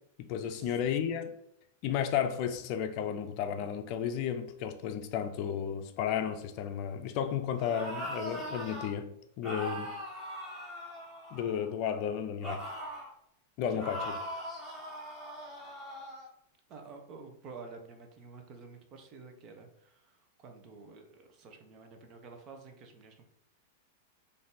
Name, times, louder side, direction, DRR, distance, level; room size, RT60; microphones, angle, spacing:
voice 1, 0.2-1.4 1.8-10.0 11.3-12.7 13.6-14.1, left 8 dB, 50° left, 0.5 m, -33 dB
sound 1, 7.5-8.9 9.4-11.7 12.4-13.1 13.8-16.3, equal, 5° right, 1.6 m, -40 dB
voice 2, 14.8-15.1 16.7-23.2, right 4 dB, 40° right, 0.8 m, -50 dB
3.8 x 2.7 x 3.8 m
hypercardioid pair, 120°, 0 cm